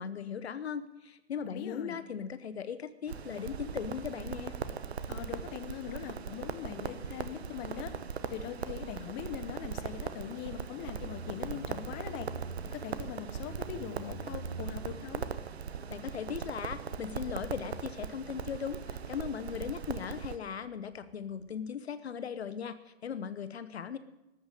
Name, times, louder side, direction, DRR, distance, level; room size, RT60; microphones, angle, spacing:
voice 1, 0.0-4.5 15.9-24.0, left 7 dB, 75° left, 13 dB, 1.0 m, -38 dB
voice 2, 1.5-2.0 5.1-7.9 8.2-12.3 12.6-15.2, left 10 dB, 30° left, 10 dB, 1.4 m, -41 dB
Crackle, 3.1-20.4, right 7 dB, 75° right, 1.1 m, -40 dB
Motorcycle, 4.4-21.6, right 3 dB, 60° right, 1.8 m, -50 dB
13.5 x 8.7 x 9.1 m, 0.98 s
hypercardioid pair, 120°, 32 cm